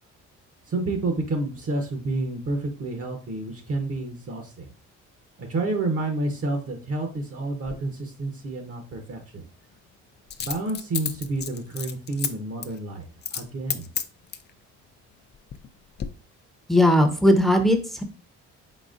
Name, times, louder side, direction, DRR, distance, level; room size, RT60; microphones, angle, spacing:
voice 1, 0.7-4.7 5.4-9.5 10.4-13.0 13.3-13.9, right 2 dB, 50° right, 4 dB, 0.9 m, -29 dB
Coin (dropping), 7.6-7.8 10.3-12.3 12.6-12.8 13.2-13.4 13.7-14.5 15.1-15.7 16.0-16.1, left 8 dB, 35° left, 0.4 m, -31 dB
voice 2, 16.7-18.0, left 1 dB, ahead, 5 dB, 0.7 m, -18 dB
4.2 x 4.0 x 2.5 m, 0.36 s
cardioid pair, 90°, 30 cm